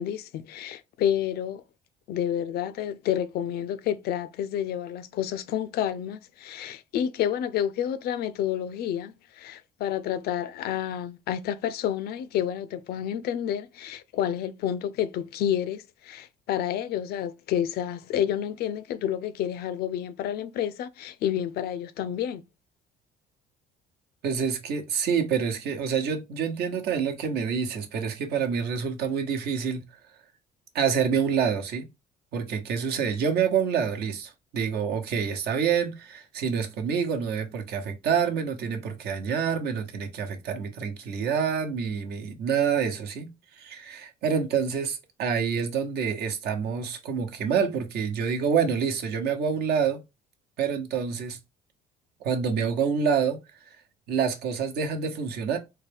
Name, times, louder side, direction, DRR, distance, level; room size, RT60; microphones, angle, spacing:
voice 1, 0.0-1.6 2.1-22.4, left 10 dB, 70° left, 0.4 m, -29 dB
voice 2, 24.2-29.8 30.7-31.8 32.3-50.0 50.6-51.4 52.2-53.4 53.7-53.8 54.1-55.6, right 6 dB, 70° right, 0.9 m, -27 dB
3.8 x 2.3 x 3.4 m
cardioid pair, 110°, 17 cm